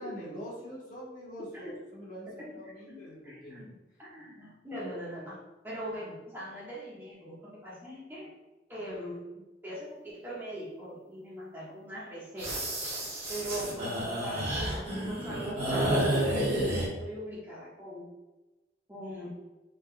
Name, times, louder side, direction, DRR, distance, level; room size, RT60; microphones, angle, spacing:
voice 1, 0.0-3.7, equal, 45° left, -5 dB, 1.3 m, -44 dB
voice 2, 1.4-1.8 2.3-5.4 5.6-8.3 8.7-9.2 9.6-12.6 13.3-18.1 18.9-19.3, equal, 10° right, -7 dB, 1.2 m, -41 dB
sound 1, 12.4-16.9, right 1 dB, 35° right, 1.4 m, -30 dB
5.8 x 4.0 x 2.2 m, 1.1 s
head